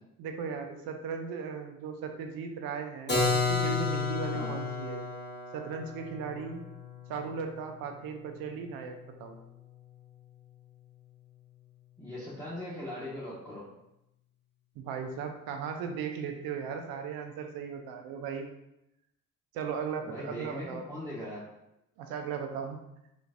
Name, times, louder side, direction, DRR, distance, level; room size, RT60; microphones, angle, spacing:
voice 1, 0.2-5.1 5.5-6.6 7.1-9.4 14.8-18.5 19.5-20.9 22.0-22.8, right 6 dB, 85° right, 5 dB, 0.5 m, -37 dB
Keyboard (musical), 3.1-8.7, left 4 dB, 30° left, 1.2 m, -32 dB
voice 2, 12.0-13.6 20.0-21.4, left 1 dB, 5° left, -10 dB, 1.2 m, -39 dB
3.9 x 3.1 x 2.5 m, 0.86 s
supercardioid pair, 50°, 34 cm